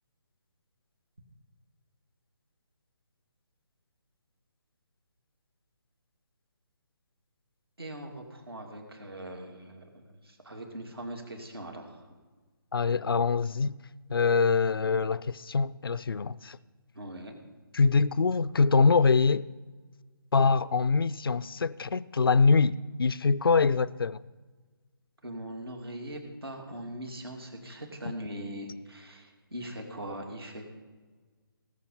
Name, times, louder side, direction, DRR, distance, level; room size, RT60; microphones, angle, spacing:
voice 1, 7.8-12.1 16.9-17.4 25.2-30.7, right 1 dB, 80° right, 2.7 m, -41 dB
voice 2, 12.7-13.8 14.1-16.6 17.7-19.4 20.3-24.2, left 4 dB, 70° left, 0.4 m, -24 dB
18.5 x 7.3 x 5.6 m
figure-of-eight pair, 145°, 12 cm